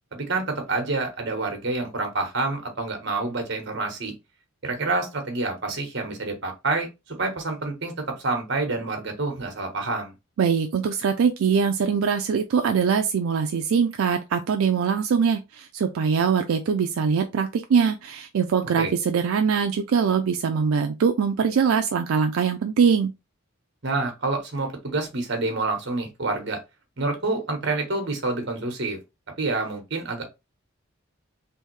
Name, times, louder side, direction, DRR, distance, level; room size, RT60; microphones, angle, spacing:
voice 1, 0.1-4.1 4.6-6.9 7.2-7.9 8.2-10.1 18.8-18.9 23.8-26.6 27.0-29.0 29.4-30.2, right 3 dB, 55° right, 1.1 m, -27 dB
voice 2, 10.4-23.1, right 6 dB, 85° right, 0.4 m, -22 dB
3.4 x 2.6 x 3.1 m
head